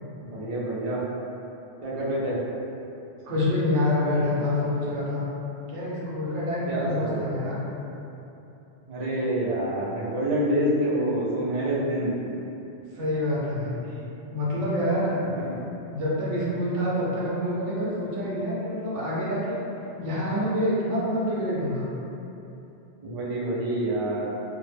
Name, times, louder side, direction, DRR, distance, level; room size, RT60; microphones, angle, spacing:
voice 1, 0.2-1.0 1.8-2.4 6.7-7.4 8.9-12.2 23.0-24.3, right 1 dB, 45° right, -7 dB, 0.4 m, -27 dB
voice 2, 3.2-5.3 5.7-7.6 12.9-13.9 14.3-15.2 15.9-19.6 19.9-21.9, left 1 dB, 90° right, -7 dB, 1.0 m, -27 dB
2.3 x 2.0 x 3.2 m, 2.9 s
omnidirectional pair, 1.1 m